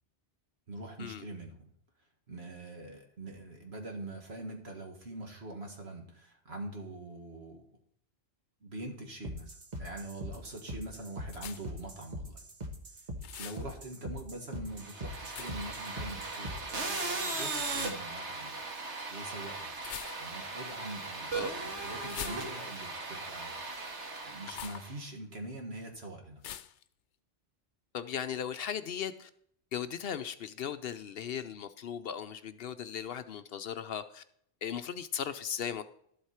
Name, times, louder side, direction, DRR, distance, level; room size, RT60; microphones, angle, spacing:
voice 1, 0.7-1.7 2.3-7.7 8.6-12.5 13.4-18.6 19.1-19.7 20.2-23.9 24.2-26.6, right 2 dB, 65° right, 3 dB, 2.1 m, -44 dB
sound 1, 9.2-16.9, equal, 40° right, 1.4 m, -42 dB
sound 2, 11.3-11.8 13.2-13.7 15.3-15.8 17.7-18.0 19.8-20.5 22.0-22.9 24.4-24.9 26.4-26.8, left 11 dB, 90° left, 0.9 m, -44 dB
sound 3, 14.8-25.0, right 3 dB, 85° right, 2.0 m, -38 dB
voice 2, 27.9-29.3 29.7-34.2 34.6-35.8, left 8 dB, 65° left, 11 dB, 0.8 m, -37 dB
12.0 x 8.0 x 4.3 m, 0.68 s
omnidirectional pair, 1.2 m